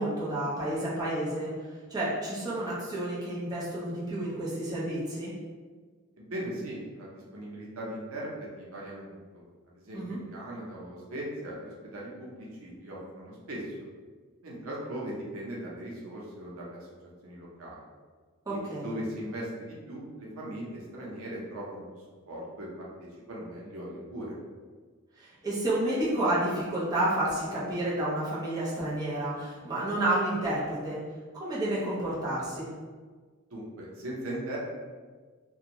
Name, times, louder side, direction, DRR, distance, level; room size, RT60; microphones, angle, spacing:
voice 1, 0.0-5.3 9.9-10.2 18.5-18.9 25.2-31.0 31.4-32.7, right 1 dB, 20° right, -8 dB, 0.6 m, -30 dB
voice 2, 6.2-13.7 14.4-16.8 17.2-17.8 18.5-22.7 23.0-24.4 33.5-34.6, right 1 dB, 90° right, -4 dB, 0.7 m, -39 dB
2.6 x 2.3 x 2.9 m, 1.5 s
head